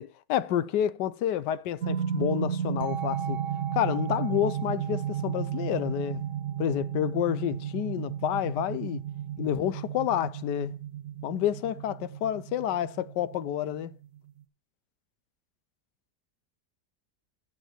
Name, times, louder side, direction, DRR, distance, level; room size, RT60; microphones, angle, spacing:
voice 1, 0.0-3.4 3.7-6.2 6.6-9.0 9.4-10.7 11.2-13.9, left 11 dB, 75° left, 1.3 m, -29 dB
sound 1, 1.8-14.4, right 9 dB, 55° right, 1.0 m, -34 dB
9.1 x 8.6 x 4.3 m
omnidirectional pair, 1.9 m